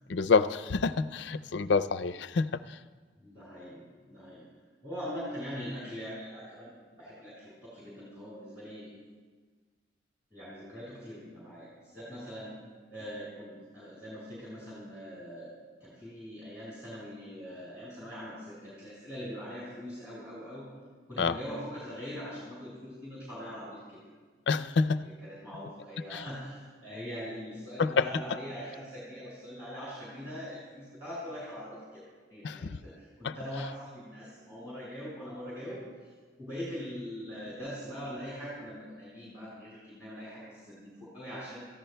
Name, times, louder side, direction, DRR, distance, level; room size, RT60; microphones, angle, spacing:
voice 1, 0.1-2.8 21.2-21.4 24.5-25.0 26.1-26.3 27.8-28.1 32.4-32.8 33.2-33.4, left 4 dB, 75° left, 13 dB, 0.4 m, -27 dB
voice 2, 3.2-4.4 4.8-8.9 10.3-12.5 12.9-15.5 15.8-20.7 21.1-24.0 24.8-32.0 32.3-35.8 36.4-41.7, equal, 10° right, -9 dB, 4.4 m, -42 dB
28.0 x 14.5 x 2.2 m, 1.4 s
head